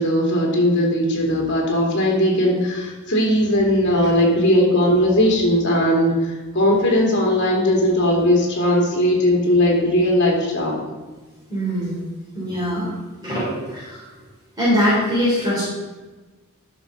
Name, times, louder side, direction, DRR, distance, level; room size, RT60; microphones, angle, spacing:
voice 1, 0.0-10.8, left 1 dB, 55° left, -1 dB, 2.9 m, -18 dB
voice 2, 11.5-12.0 12.3-12.9 13.2-14.0 14.6-15.7, equal, 20° right, -10 dB, 3.7 m, -22 dB
11.0 x 6.2 x 5.3 m, 1.2 s
head